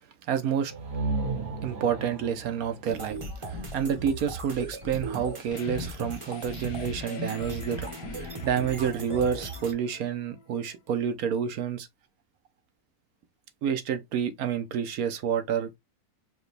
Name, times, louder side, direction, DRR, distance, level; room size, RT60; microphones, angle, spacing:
voice 1, 0.3-0.7 1.6-3.2 3.5-11.9 13.6-15.8, right 8 dB, 70° right, 1.2 m, -29 dB
sound 1, 0.7-4.4, right 3 dB, 50° right, 1.0 m, -35 dB
sound 2, 2.8-9.7, right 2 dB, 25° right, 0.8 m, -37 dB
sound 3, 5.5-11.0, left 7 dB, 75° left, 1.1 m, -45 dB
4.9 x 2.3 x 3.2 m
omnidirectional pair, 1.6 m